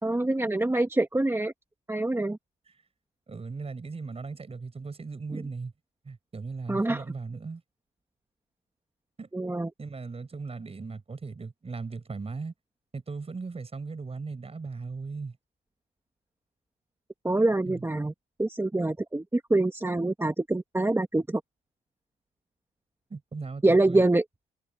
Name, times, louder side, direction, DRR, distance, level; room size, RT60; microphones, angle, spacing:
voice 1, 0.0-1.5 1.9-2.4 5.3-5.4 6.7-7.0 9.3-9.7 17.2-18.1 18.4-21.4 23.6-24.2, right 2 dB, 10° right, 1.9 m, -25 dB
voice 2, 3.3-5.7 6.0-7.6 9.2-9.3 9.8-12.5 12.9-15.4 17.7-17.9 23.1-24.0, right 4 dB, 30° right, 6.0 m, -38 dB
cardioid pair, 90°, 20 cm